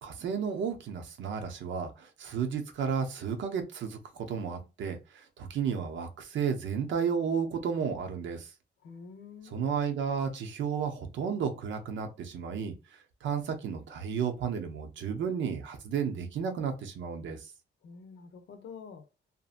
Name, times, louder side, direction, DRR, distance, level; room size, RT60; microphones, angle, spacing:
voice 1, 0.0-8.5 9.5-17.5, right 6 dB, 80° right, 0.7 m, -33 dB
voice 2, 8.8-9.6 17.8-19.0, left 5 dB, 70° left, 0.7 m, -47 dB
2.7 x 2.5 x 2.4 m
cardioid pair, 130°, 19 cm